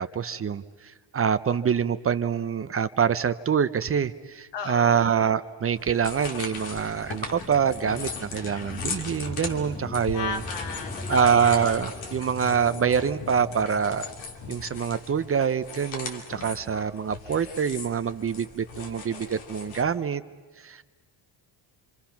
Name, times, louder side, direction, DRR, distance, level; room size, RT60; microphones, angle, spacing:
voice 1, 0.0-10.4 11.1-14.1 14.5-20.2 20.6-20.8, right 7 dB, 30° right, 12 dB, 0.6 m, -25 dB
voice 2, 4.5-5.3 10.1-11.8 18.8-19.5, left 5 dB, 70° left, 6 dB, 2.0 m, -36 dB
sound 1, 5.8-19.8, left 4 dB, 90° left, 2.6 m, -39 dB
sound 2, 6.5-15.4, left 3 dB, 15° left, 0.9 m, -40 dB
27.5 x 25.5 x 5.9 m, 1.4 s
cardioid pair, 105°, 44 cm